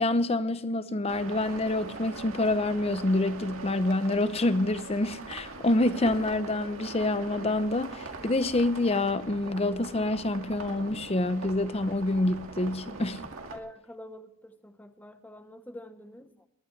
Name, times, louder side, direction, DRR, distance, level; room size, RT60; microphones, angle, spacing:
voice 1, 0.0-13.2, left 2 dB, 30° left, 0.7 m, -27 dB
sound 1, 1.1-13.6, right 3 dB, 90° right, 1.9 m, -42 dB
voice 2, 13.5-16.5, left 1 dB, 10° left, 0.9 m, -46 dB
19.0 x 12.0 x 3.3 m
head